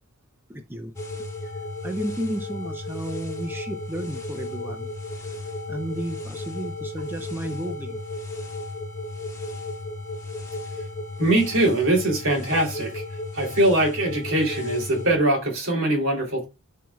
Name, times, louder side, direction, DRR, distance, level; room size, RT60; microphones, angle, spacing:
voice 1, 0.5-0.9 1.4-1.5 1.8-4.9 5.7-8.0, right 1 dB, 10° right, 0.6 m, -32 dB
sound 1, 1.0-15.2, left 2 dB, 15° left, 1.7 m, -34 dB
voice 2, 11.2-13.0 13.3-16.5, right 1 dB, 65° right, 3.2 m, -22 dB
13.0 x 4.7 x 2.3 m
head